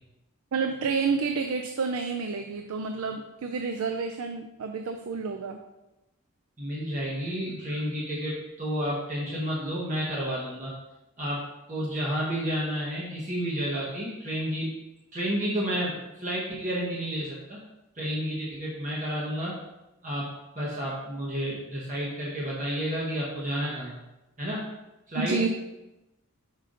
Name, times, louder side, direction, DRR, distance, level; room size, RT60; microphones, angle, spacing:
voice 1, 0.5-5.6 25.2-25.5, right 5 dB, 80° right, 6 dB, 0.4 m, -29 dB
voice 2, 6.6-10.7 11.2-11.4 11.7-14.7 15.1-17.6 17.9-19.6 20.0-20.3 20.6-24.0 24.4-24.7 25.1-25.5, equal, 35° right, -5 dB, 0.9 m, -31 dB
5.6 x 5.0 x 3.8 m, 0.99 s
head